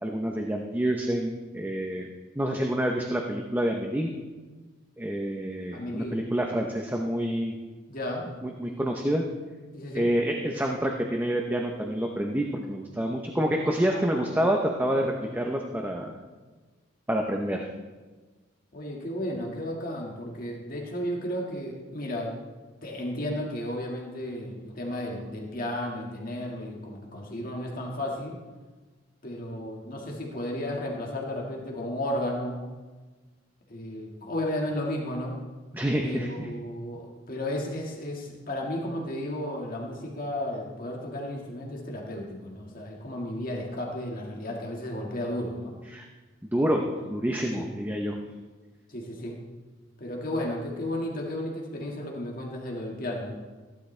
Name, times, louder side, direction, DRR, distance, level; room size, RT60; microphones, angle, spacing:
voice 1, 0.0-2.1 2.4-4.1 5.0-7.5 8.4-9.2 9.9-16.1 17.1-17.7 35.7-36.5 45.9-46.0 46.5-48.2, right 1 dB, 10° right, 1 dB, 0.8 m, -28 dB
voice 2, 5.7-6.2 7.9-8.3 9.7-10.1 13.9-14.4 14.9-15.1 18.7-22.3 22.8-28.4 29.2-32.6 33.7-35.3 36.0-45.7 47.5-47.7 48.9-49.4 50.0-53.4, left 1 dB, 50° left, -1 dB, 1.8 m, -33 dB
15.0 x 11.5 x 3.3 m, 1.3 s
head